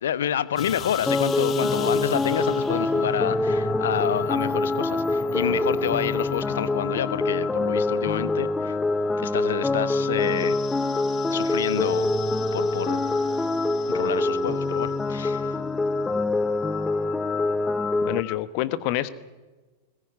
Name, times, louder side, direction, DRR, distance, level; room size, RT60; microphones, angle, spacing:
voice 1, 0.0-8.8 9.2-10.6 11.3-12.1 12.5-13.0 13.4-13.5 13.9-15.5, left 9 dB, 60° left, 17 dB, 1.0 m, -28 dB
sound 1, 0.6-18.4, left 10 dB, 30° left, 1.1 m, -37 dB
sound 2, 1.1-18.2, left 2 dB, 10° left, 0.8 m, -25 dB
voice 2, 18.0-19.1, left 15 dB, 45° left, 15 dB, 1.3 m, -27 dB
21.0 x 20.5 x 9.5 m, 1.3 s
figure-of-eight pair, 90°, 0 cm